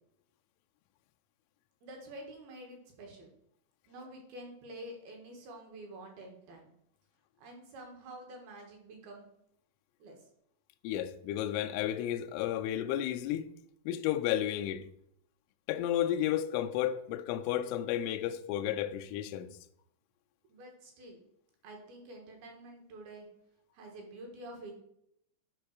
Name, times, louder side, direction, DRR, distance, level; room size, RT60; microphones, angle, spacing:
voice 1, 1.8-3.3 3.9-6.7 7.4-9.3 10.0-10.2 20.4-21.2 21.6-23.3 23.7-24.8, right 1 dB, 65° right, 3.0 m, -48 dB
voice 2, 10.8-13.5 13.9-14.8 15.7-19.5, left 11 dB, 85° left, 2.9 m, -32 dB
11.0 x 5.3 x 4.7 m
omnidirectional pair, 5.7 m